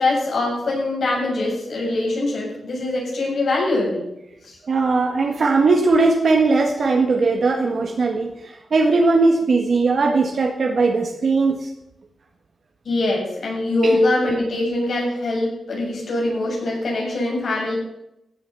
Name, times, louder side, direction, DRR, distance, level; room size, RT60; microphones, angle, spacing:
voice 1, 0.0-4.1 4.5-4.6 12.8-17.8, left 2 dB, 65° left, -2 dB, 7.5 m, -23 dB
voice 2, 4.7-11.7 13.8-14.0, right 3 dB, 60° right, 2 dB, 1.7 m, -19 dB
16.0 x 9.0 x 7.0 m, 0.85 s
cardioid pair, 95°, 0 cm